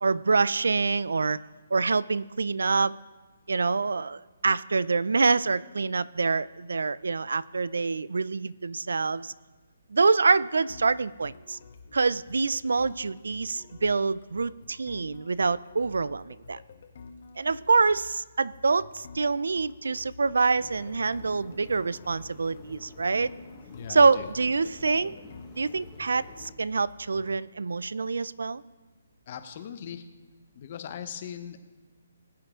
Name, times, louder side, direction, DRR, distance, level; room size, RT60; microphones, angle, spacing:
voice 1, 0.0-1.4 1.7-3.0 3.5-9.3 9.9-11.6 11.9-16.6 17.4-23.3 23.9-25.2 25.6-28.6, right 4 dB, 90° right, 20 dB, 0.4 m, -26 dB
sound 1, 10.7-27.4, left 4 dB, 50° left, 1.1 m, -50 dB
sound 2, 20.4-26.5, left 3 dB, 10° left, 1.2 m, -50 dB
voice 2, 23.7-24.3 29.3-30.0 30.5-31.6, left 9 dB, 35° left, 9 dB, 0.8 m, -39 dB
20.0 x 8.9 x 3.7 m, 1.3 s
hypercardioid pair, 170°, 0 cm